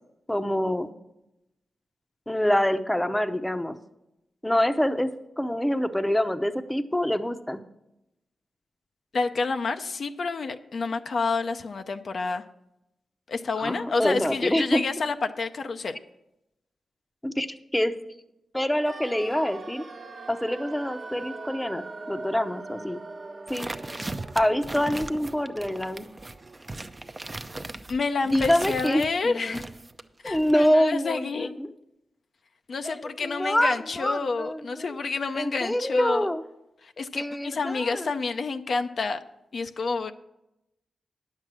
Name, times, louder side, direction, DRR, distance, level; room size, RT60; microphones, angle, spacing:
voice 1, 0.3-0.9 2.3-3.8 4.4-5.1 5.4-7.6 13.6-14.8 17.2-17.5 17.7-17.9 18.5-19.8 20.3-23.0 23.5-23.7 24.3-26.1 28.3-29.6 30.2-31.7 32.8-34.9 35.3-36.4 37.1-38.1, equal, 10° left, 9 dB, 0.7 m, -26 dB
voice 2, 9.1-12.4 13.3-16.0 27.9-29.6 30.2-31.5 32.7-36.3 36.8-39.2 39.5-40.1, left 4 dB, 65° left, 7 dB, 0.6 m, -29 dB
sound 1, 18.8-28.8 29.0-29.1, right 3 dB, 50° right, 1.1 m, -43 dB
sound 2, 23.5-29.1 29.5-30.7, right 2 dB, 25° right, 0.6 m, -38 dB
9.7 x 7.4 x 6.2 m, 0.88 s
cardioid pair, 65°, 0 cm